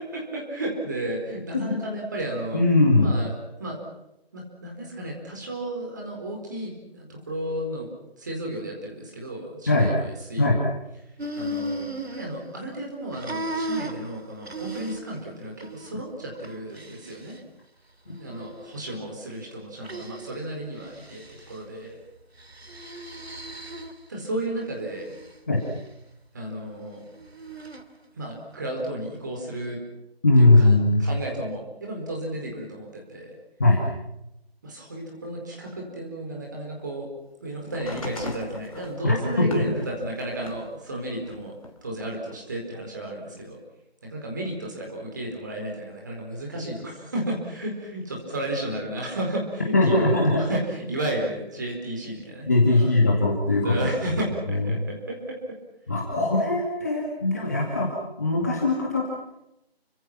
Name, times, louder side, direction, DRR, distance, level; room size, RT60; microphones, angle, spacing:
voice 1, 0.1-2.6 3.0-3.3 3.6-3.8 4.3-7.9 8.2-10.6 11.3-17.4 18.2-22.0 24.1-25.1 26.3-27.0 28.1-29.8 30.4-30.7 31.0-33.3 34.6-37.1 37.4-41.5 41.8-43.6 44.0-52.9 53.6-55.4, right 1 dB, 20° right, -1 dB, 4.6 m, -33 dB
voice 2, 2.5-3.1 9.7-9.9 10.4-10.6 25.5-25.6 30.2-31.0 33.6-33.8 39.0-39.7 49.7-50.4 52.5-53.7 54.5-54.7 55.9-57.9 58.2-59.2, left 2 dB, 15° left, -2 dB, 2.2 m, -20 dB
sound 1, 11.2-12.8 13.1-15.2 15.6-15.9 16.4-17.4 18.1-18.9 19.8-20.4 20.8-21.6 22.4-24.1 24.6-25.4 27.2-27.8, right 1 dB, 75° right, 3.0 m, -36 dB
sound 2, 37.7-40.7 41.2-42.4 43.4-43.5, left 2 dB, 35° left, 3.1 m, -38 dB
29.5 x 25.0 x 6.0 m, 0.85 s
figure-of-eight pair, 170°, 31 cm